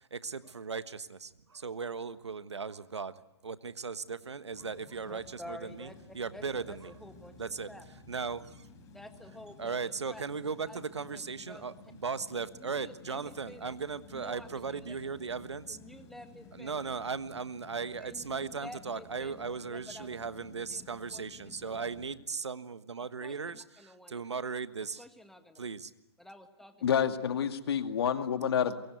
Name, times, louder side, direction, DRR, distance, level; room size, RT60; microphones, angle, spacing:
voice 1, 0.0-5.9 6.1-6.9 7.4-7.7 8.1-8.7 9.6-11.7 12.0-15.8 16.5-25.0 25.6-25.9, right 5 dB, 90° right, 13 dB, 1.4 m, -37 dB
sound 1, 4.5-22.1, left 4 dB, 25° left, 6.1 m, -54 dB
voice 2, 5.1-7.4 7.7-7.8 8.9-9.8 10.1-10.2 10.7-10.8 11.1-11.8 12.5-13.7 14.1-15.3 15.7-16.8 18.0-19.3 19.7-20.2 20.5-20.8 21.1-21.9 23.0-24.2 25.0-25.6 26.2-26.8, left 1 dB, ahead, 6 dB, 2.0 m, -50 dB
voice 3, 26.8-28.8, left 8 dB, 65° left, 8 dB, 2.3 m, -28 dB
24.0 x 23.0 x 9.4 m, 0.90 s
hypercardioid pair, 135°, 14 cm